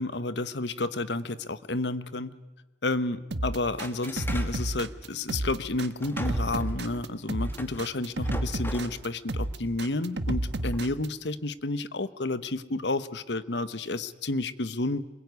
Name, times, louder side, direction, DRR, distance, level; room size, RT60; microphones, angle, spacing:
voice 1, 0.0-2.3 2.8-15.0, left 2 dB, 80° left, 14 dB, 1.1 m, -31 dB
sound 1, 3.3-11.1, right 1 dB, 80° right, 1.3 m, -31 dB
sound 2, 3.7-4.7 6.0-9.0 9.6-9.8 10.4-10.8, left 1 dB, 15° left, 2.0 m, -41 dB
27.0 x 22.0 x 9.5 m, 1.1 s
head